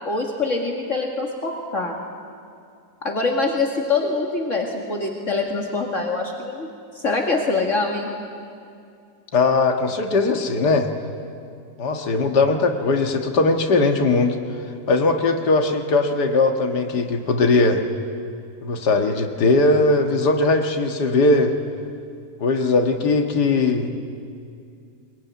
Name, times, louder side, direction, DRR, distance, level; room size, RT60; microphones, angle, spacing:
voice 1, 0.1-2.0 3.0-6.7 7.0-8.1, left 3 dB, 45° left, 1 dB, 2.3 m, -24 dB
voice 2, 9.3-10.9 11.8-14.4 14.9-17.8 18.6-21.5 22.4-23.9, left 3 dB, 75° left, 5 dB, 2.2 m, -19 dB
22.5 x 22.0 x 9.4 m, 2.4 s
omnidirectional pair, 1.8 m